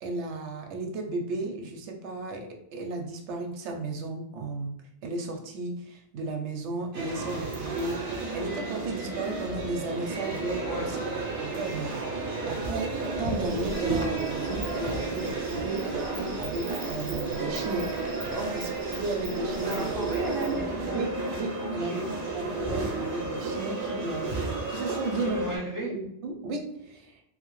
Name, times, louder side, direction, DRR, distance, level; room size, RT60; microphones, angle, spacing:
voice 1, 0.0-4.8 5.0-11.0 11.4-17.9 18.6-20.0 20.9-25.4 25.8-27.2, right 2 dB, 80° right, 3 dB, 0.9 m, -34 dB
sound 1, 6.9-25.6, right 3 dB, 55° right, 0.9 m, -32 dB
Insect, 13.2-20.6, right 1 dB, 25° right, 0.5 m, -44 dB
voice 2, 19.6-22.0 25.2-25.9, right 1 dB, 25° left, -6 dB, 0.5 m, -36 dB
2.8 x 2.1 x 3.0 m, 0.77 s
omnidirectional pair, 1.2 m